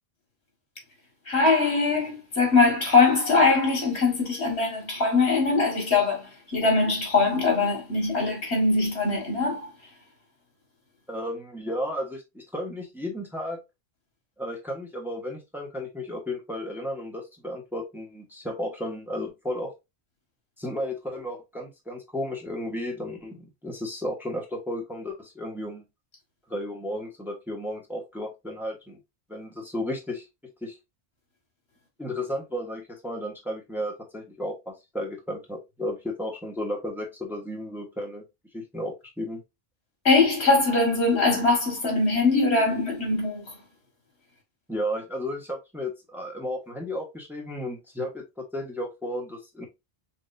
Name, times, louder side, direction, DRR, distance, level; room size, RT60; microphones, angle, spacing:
voice 1, 1.3-9.7 40.0-43.6, left 3 dB, 90° left, 2.2 m, -22 dB
voice 2, 11.1-13.6 14.4-19.7 20.6-25.8 26.5-29.0 29.3-30.2 30.6-30.7 32.0-38.2 38.5-39.4 44.7-49.7, left 1 dB, ahead, 1.2 m, -33 dB
5.6 x 2.9 x 2.7 m
omnidirectional pair, 1.1 m